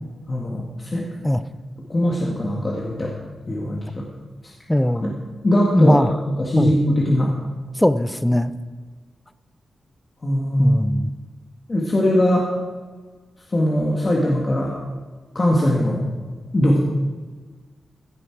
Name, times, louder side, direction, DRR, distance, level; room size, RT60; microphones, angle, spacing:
voice 1, 0.3-1.0 1.9-3.1 3.5-4.0 4.4-4.5 5.0-5.1 5.4-6.1 6.4-7.3 10.2-10.8 11.7-12.5 13.5-14.7 15.3-16.0 16.5-16.8, left 1 dB, 30° left, -3 dB, 2.1 m, -20 dB
voice 2, 4.7-5.1 5.7-6.1 6.6-6.7 7.8-8.5 10.6-11.1, left 1 dB, 10° left, 13 dB, 0.5 m, -19 dB
15.5 x 10.0 x 4.9 m, 1.4 s
wide cardioid pair, 110°, 0 cm